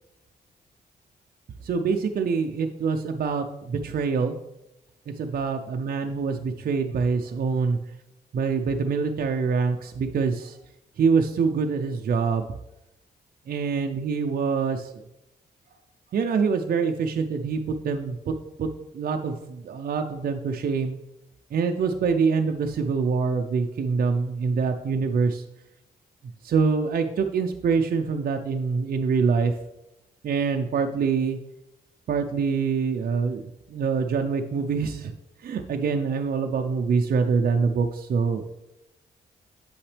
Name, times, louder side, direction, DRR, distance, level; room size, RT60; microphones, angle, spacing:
voice 1, 1.6-4.3 5.1-7.8 8.3-10.6 11.0-12.5 13.5-15.0 16.1-18.7 18.9-21.0 21.5-25.4 26.4-29.6 30.2-31.4 32.1-35.1 35.4-38.5, right 5 dB, 60° right, 4 dB, 0.5 m, -25 dB
7.9 x 5.8 x 3.3 m, 0.91 s
cardioid pair, 80°, 17 cm